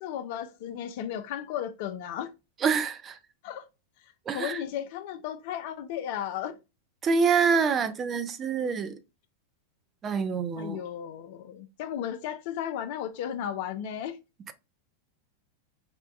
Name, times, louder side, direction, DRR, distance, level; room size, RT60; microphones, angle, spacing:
voice 1, 0.0-2.3 3.4-3.6 4.3-6.6 10.6-14.2, left 10 dB, 50° left, 0.4 m, -34 dB
voice 2, 2.6-3.2 4.3-4.6 7.0-9.0 10.0-10.8, right 5 dB, 25° right, 0.4 m, -26 dB
5.0 x 2.2 x 2.4 m
figure-of-eight pair, 90°, 0 cm